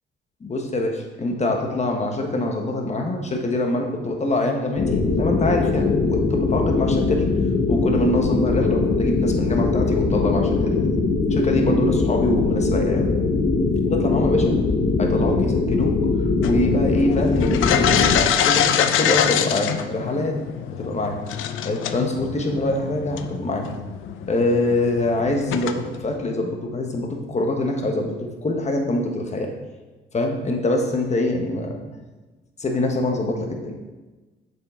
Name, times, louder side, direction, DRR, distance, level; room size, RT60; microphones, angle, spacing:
voice 1, 0.4-7.3 7.7-10.8 11.3-13.1 13.9-14.5 15.0-15.9 16.4-20.3 20.7-21.2 21.6-23.7 24.3-29.5 30.1-31.8 32.6-33.9, left 2 dB, 35° left, 2 dB, 1.4 m, -24 dB
sound 1, 4.8-18.2, left 3 dB, 65° left, 1.4 m, -21 dB
sound 2, 16.4-26.2, left 9 dB, 85° left, 0.5 m, -25 dB
7.7 x 5.9 x 3.8 m, 1.2 s
cardioid pair, 90°, 20 cm